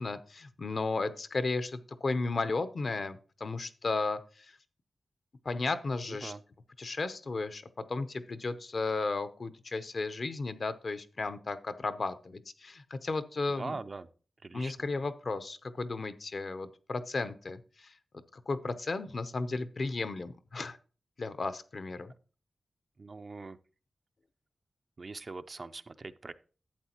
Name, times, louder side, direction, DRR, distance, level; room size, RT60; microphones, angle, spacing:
voice 1, 0.0-4.5 5.4-6.3 6.8-7.6 7.9-13.7 14.5-17.9 18.5-20.8 21.2-22.1, left 3 dB, 55° left, 12 dB, 0.7 m, -34 dB
voice 2, 6.1-6.4 13.5-14.1 14.4-14.9 23.0-23.6 25.0-26.3, right 3 dB, 45° right, 11 dB, 0.5 m, -42 dB
11.5 x 7.9 x 2.9 m, 0.37 s
wide cardioid pair, 75°, 0 cm